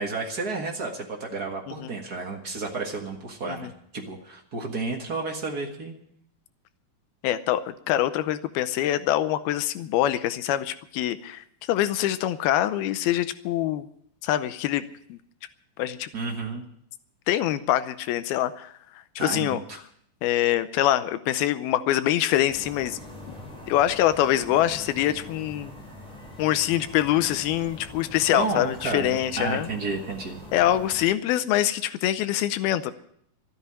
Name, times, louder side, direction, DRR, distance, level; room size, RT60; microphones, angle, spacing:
voice 1, 0.0-3.7 3.9-6.0 16.1-16.6 19.2-19.8 28.3-30.4 31.0-31.1, right 3 dB, 55° right, 2 dB, 1.0 m, -31 dB
voice 2, 7.2-13.9 14.2-14.8 15.1-15.2 15.8-16.1 17.3-18.7 19.2-19.6 20.2-23.0 23.7-25.8 26.4-29.7 30.5-32.9, left 13 dB, 80° left, 13 dB, 2.6 m, -24 dB
sound 1, 22.4-31.1, left 1 dB, ahead, 5.0 m, -43 dB
13.0 x 10.0 x 9.7 m, 0.68 s
omnidirectional pair, 4.5 m